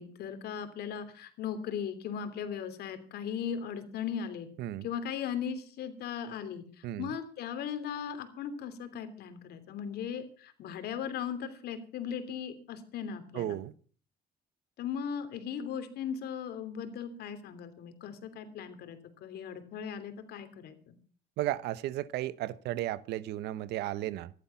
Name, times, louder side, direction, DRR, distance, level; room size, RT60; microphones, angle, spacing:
voice 1, 0.0-4.5 4.8-13.6 14.8-20.9, left 8 dB, 70° left, 3.1 m, -38 dB
voice 2, 13.3-13.7 21.4-24.3, right 14 dB, 80° right, 1.0 m, -34 dB
14.5 x 12.0 x 5.8 m
cardioid pair, 110°, 17 cm